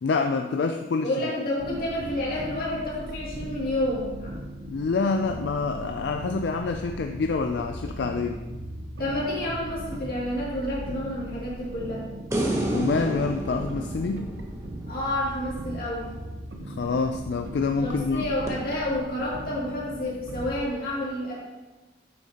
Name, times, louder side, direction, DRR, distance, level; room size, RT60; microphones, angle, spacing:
voice 1, 0.0-1.1 4.7-8.4 12.7-14.3 16.7-18.3, left 4 dB, 75° left, 6 dB, 0.4 m, -27 dB
voice 2, 1.0-4.4 9.0-12.1 14.9-16.0 17.8-21.3, left 1 dB, 50° left, -6 dB, 2.5 m, -29 dB
sound 1, 1.6-20.7, right 1 dB, 80° right, 0.8 m, -39 dB
sound 2, 12.3-15.6 18.5-18.6, right 1 dB, 15° right, 0.9 m, -30 dB
8.5 x 6.3 x 2.9 m, 1.1 s
head